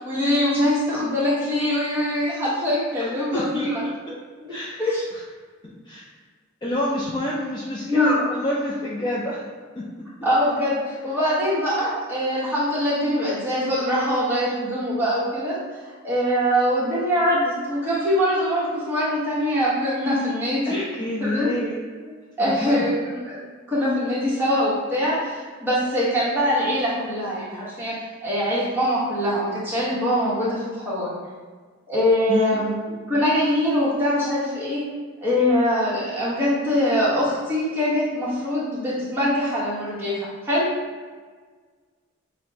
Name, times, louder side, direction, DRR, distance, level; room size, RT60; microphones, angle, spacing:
voice 1, 0.0-3.8 4.4-4.5 4.8-5.0 7.8-8.2 10.2-15.6 15.8-20.8 21.2-21.5 22.0-22.1 22.4-23.4 23.7-28.0 28.2-31.1 31.9-34.8 35.2-40.7, equal, 10° right, -9 dB, 1.1 m, -23 dB
voice 2, 3.3-4.2 4.5-4.8 5.1-5.2 5.6-6.1 6.6-9.4 20.6-21.7 22.4-22.8 32.3-32.7, left 1 dB, 20° left, -5 dB, 0.4 m, -28 dB
5.9 x 2.1 x 2.7 m, 1.5 s
head